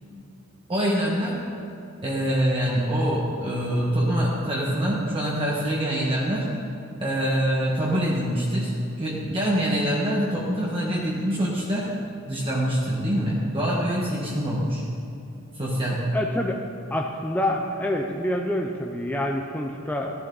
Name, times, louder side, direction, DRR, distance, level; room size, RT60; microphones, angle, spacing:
voice 1, 0.7-1.4 2.0-6.5 7.0-8.7 9.0-11.9 12.3-14.8 15.5-16.0, equal, 25° right, -5 dB, 1.5 m, -25 dB
voice 2, 16.1-16.6 16.9-20.1, left 1 dB, 10° left, 0 dB, 0.6 m, -27 dB
16.0 x 11.0 x 4.0 m, 2.8 s
head